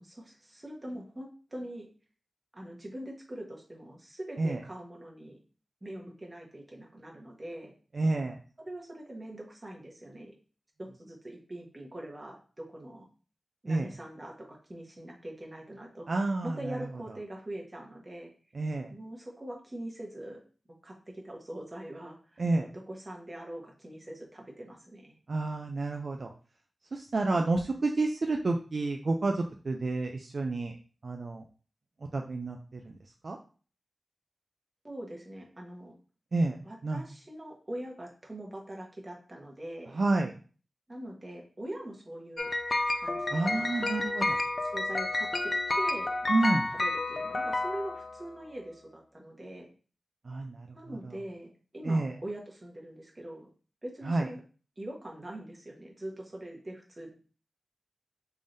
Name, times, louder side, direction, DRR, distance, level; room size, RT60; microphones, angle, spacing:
voice 1, 0.0-1.9 2.5-5.4 5.8-7.7 8.6-10.3 10.8-13.1 13.6-18.3 18.9-20.4 20.8-25.1 34.8-35.9 36.6-39.9 40.9-42.5 42.9-43.7 44.3-46.1 46.7-49.7 50.7-53.5 53.8-54.4 54.8-57.1, right 1 dB, 30° right, 0 dB, 1.1 m, -43 dB
voice 2, 7.9-8.4 13.7-13.9 16.1-16.8 18.5-18.9 22.4-22.7 25.3-26.3 26.9-30.7 31.0-31.4 32.1-32.8 33.2-33.4 36.3-36.6 36.8-37.0 40.0-40.3 43.3-44.4 46.3-46.7 50.3-50.6 51.8-52.1 54.1-54.3, right 2 dB, 65° right, 3 dB, 0.4 m, -29 dB
sound 1, 42.4-48.4, left 2 dB, 45° left, 0.4 m, -30 dB
3.6 x 3.3 x 2.6 m, 0.38 s
wide cardioid pair, 65°, 0 cm